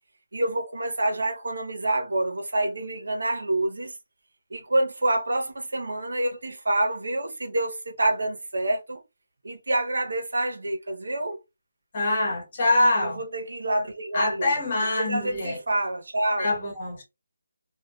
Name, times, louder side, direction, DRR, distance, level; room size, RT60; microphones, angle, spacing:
voice 1, 0.3-4.0 4.5-9.0 9.4-11.4 13.0-14.5 14.8-16.5, right 1 dB, 90° right, 0.8 m, -27 dB
voice 2, 11.9-13.2 14.1-15.6 16.4-17.0, left 2 dB, 30° left, 1.0 m, -24 dB
2.7 x 2.2 x 2.3 m
hypercardioid pair, 180°, 0 cm